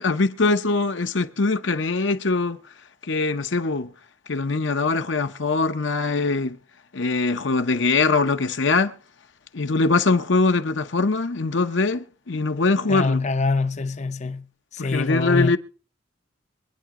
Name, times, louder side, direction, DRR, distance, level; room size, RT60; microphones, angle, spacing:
voice 1, 0.0-2.6 3.0-3.9 4.3-6.6 6.9-8.9 9.5-13.2 14.8-15.6, left 3 dB, 65° left, 0.8 m, -22 dB
voice 2, 12.9-14.5 14.7-15.6, left 3 dB, 35° left, 0.6 m, -24 dB
24.5 x 9.3 x 3.7 m
head